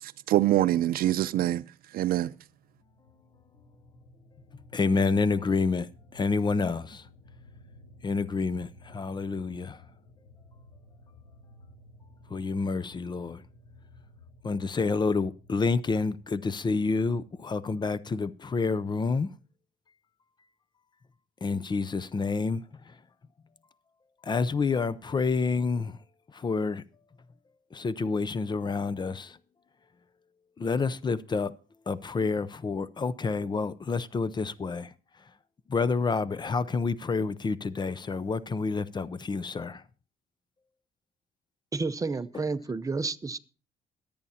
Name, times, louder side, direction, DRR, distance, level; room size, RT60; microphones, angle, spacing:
voice 1, 0.0-1.6 1.9-2.3, right 14 dB, 75° right, 0.5 m, -25 dB
sound 1, 2.5-17.9, left 2 dB, 75° left, 1.4 m, -55 dB
voice 2, 4.7-7.1 8.0-9.8 12.3-13.4 14.4-19.3 21.4-22.9 24.2-26.0 26.3-26.8 27.7-29.4 30.6-31.5 31.9-34.9 35.7-39.8, left 4 dB, 30° left, 0.5 m, -28 dB
voice 3, 41.7-43.4, right 3 dB, 20° right, 0.7 m, -30 dB
23.0 x 8.6 x 2.8 m
cardioid pair, 100°, 15 cm